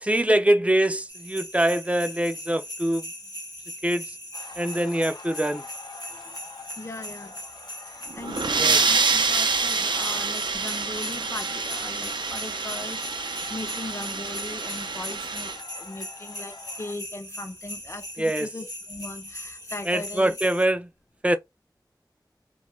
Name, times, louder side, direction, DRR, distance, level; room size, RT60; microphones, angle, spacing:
voice 1, 0.0-3.1 3.8-4.2 4.6-5.7 8.6-8.8 18.2-18.5 19.9-20.9 21.2-21.4, right 1 dB, 15° right, 0.4 m, -24 dB
sound 1, 1.1-20.7, left 1 dB, 55° left, 1.0 m, -40 dB
sound 2, 4.3-16.9, left 4 dB, 75° left, 0.6 m, -46 dB
voice 2, 6.8-7.4 7.9-20.4, left 2 dB, 35° left, 0.5 m, -39 dB
sound 3, 8.1-15.6, right 4 dB, 90° right, 0.4 m, -26 dB
2.2 x 2.2 x 3.0 m
wide cardioid pair, 55°, 8 cm